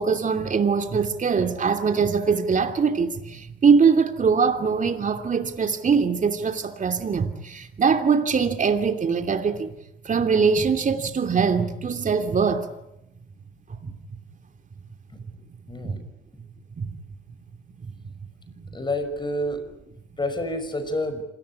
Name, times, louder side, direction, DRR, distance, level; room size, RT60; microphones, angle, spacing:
voice 1, 0.0-9.7 10.0-12.7 13.8-13.9 15.8-16.0 16.8-16.9, right 5 dB, 40° right, 2.8 m, -22 dB
voice 2, 15.7-16.0 18.7-19.6 20.2-21.2, left 1 dB, 25° left, 5.7 m, -28 dB
27.0 x 19.0 x 9.7 m
cardioid pair, 90°, 20 cm